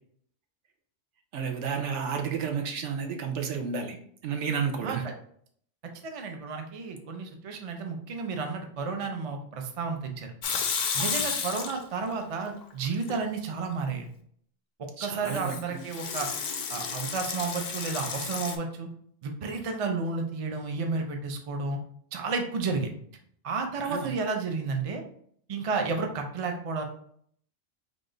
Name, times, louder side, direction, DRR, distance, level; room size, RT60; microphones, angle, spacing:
voice 1, 1.3-4.0 4.2-5.1 11.0-11.3 15.0-15.8 23.8-24.2, right 6 dB, 75° right, 4 dB, 0.9 m, -31 dB
voice 2, 6.0-10.3 10.9-14.1 14.8-16.3 16.7-18.9 19.2-21.8 22.1-22.9 23.4-25.0 25.5-26.8, right 4 dB, 50° right, 4 dB, 0.4 m, -32 dB
Water tap faucet / Sink (filling or washing) / Liquid, 10.4-12.1 12.5-13.2 15.2-18.6, left 6 dB, 65° left, 0.4 m, -32 dB
3.7 x 2.4 x 3.8 m, 0.63 s
omnidirectional pair, 1.3 m